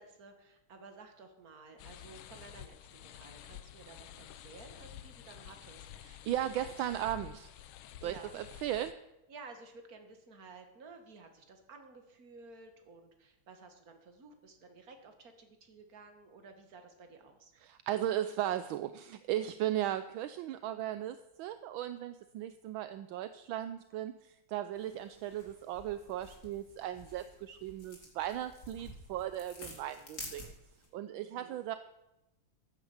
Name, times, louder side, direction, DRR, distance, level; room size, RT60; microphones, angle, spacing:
voice 1, 0.0-7.1 8.0-8.4 9.3-17.5 31.2-31.6, right 4 dB, 45° right, 6 dB, 2.1 m, -54 dB
sound 1, 1.8-8.9, left 11 dB, 80° left, 1.6 m, -50 dB
voice 2, 6.0-7.5 8.0-9.0 17.6-30.5 30.9-31.8, right 12 dB, 75° right, 11 dB, 1.4 m, -37 dB
sound 2, 24.7-30.9, left 2 dB, 40° left, 3.1 m, -51 dB
14.5 x 9.0 x 7.2 m, 0.93 s
omnidirectional pair, 2.3 m